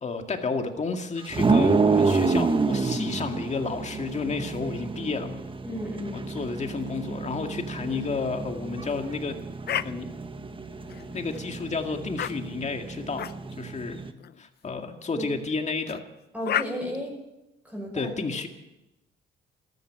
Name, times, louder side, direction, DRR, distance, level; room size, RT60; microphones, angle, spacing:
voice 1, 0.0-5.4 6.3-9.3 9.8-10.1 11.1-13.2 13.6-14.0 14.4-16.0 17.9-18.5, left 4 dB, 35° left, 5 dB, 2.1 m, -31 dB
sound 1, 1.3-14.1, right 4 dB, 25° right, 1.2 m, -28 dB
voice 2, 5.6-6.3 15.1-15.3 16.3-17.1 17.6-18.1, equal, 5° right, -2 dB, 6.4 m, -33 dB
sound 2, 9.7-9.9 10.9-11.4 12.2-12.3 13.2-13.3 14.2-14.4 15.9-16.0 16.5-16.7, left 10 dB, 55° left, 0.6 m, -30 dB
14.0 x 13.0 x 7.5 m, 0.96 s
cardioid pair, 90°, 20 cm